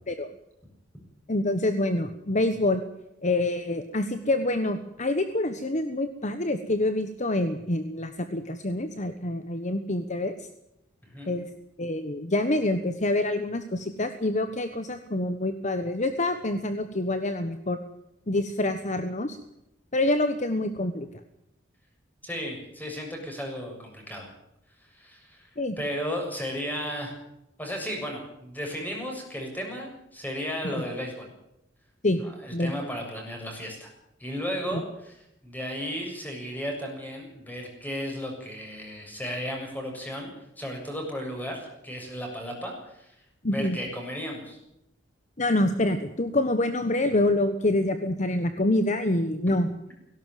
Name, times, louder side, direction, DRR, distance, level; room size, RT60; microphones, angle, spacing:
voice 1, 1.3-2.8 3.2-10.4 11.3-11.5 11.8-17.8 18.3-19.4 19.9-21.1 25.6-25.8 30.7-30.8 32.0-32.2 32.5-32.7 34.7-34.8 43.4-43.8 45.4-49.7, left 1 dB, 40° left, 9 dB, 1.2 m, -26 dB
voice 2, 22.2-24.3 24.9-25.5 25.8-27.1 27.6-31.3 32.2-33.9 34.2-40.3 40.6-43.2 43.5-44.6, equal, 10° left, 1 dB, 7.1 m, -34 dB
17.5 x 17.5 x 9.3 m, 0.83 s
head